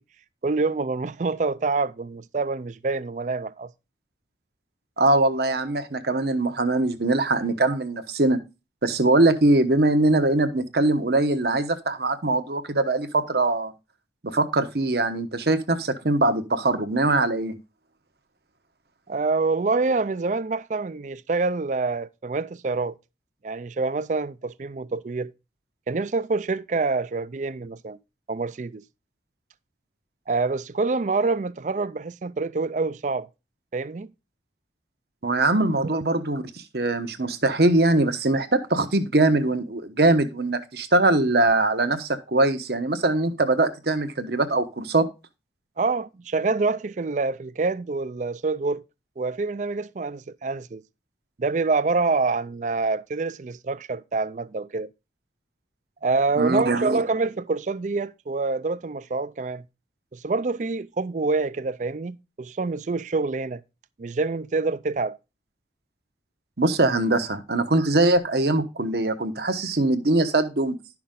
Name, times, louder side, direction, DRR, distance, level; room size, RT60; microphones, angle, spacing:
voice 1, 0.4-3.7 19.1-23.0 23.4-25.3 25.9-28.0 28.3-28.8 30.3-33.3 33.7-34.1 35.8-36.0 45.8-48.8 49.2-50.8 51.4-54.9 56.0-59.6 60.1-63.6 64.0-65.2, right 3 dB, 40° right, 0.4 m, -26 dB
voice 2, 5.0-8.4 8.8-13.7 14.2-17.5 35.2-45.1 56.4-57.0 66.6-70.7, right 2 dB, 60° right, 1.1 m, -22 dB
11.5 x 6.0 x 3.7 m
head